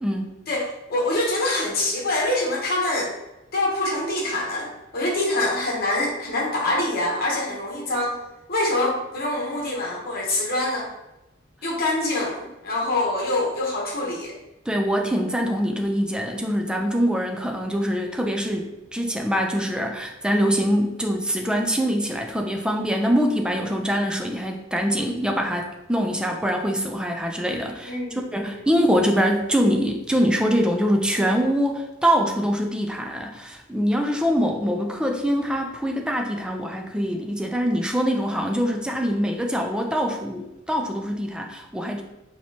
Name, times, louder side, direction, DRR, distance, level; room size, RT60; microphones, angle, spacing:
voice 1, 0.5-3.1 3.5-8.1 8.5-10.9 11.6-14.4 27.8-28.6, left 2 dB, 50° left, -2 dB, 1.0 m, -25 dB
voice 2, 14.7-27.9 28.3-42.0, equal, 5° right, 2 dB, 0.4 m, -24 dB
4.8 x 3.0 x 2.8 m, 0.94 s
head